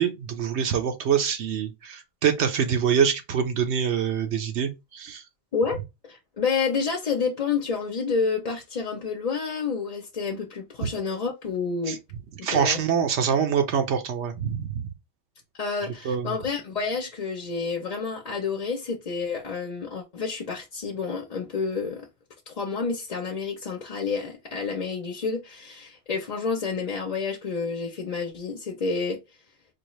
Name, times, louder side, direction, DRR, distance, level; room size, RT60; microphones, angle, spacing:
voice 1, 0.0-5.2 11.9-12.0 12.4-14.8 16.1-16.4, right 7 dB, 80° right, 1.0 m, -25 dB
voice 2, 6.0-12.0 12.4-12.8 15.6-22.1 22.5-29.2, left 5 dB, 45° left, 0.6 m, -29 dB
4.5 x 2.4 x 3.0 m
omnidirectional pair, 1.2 m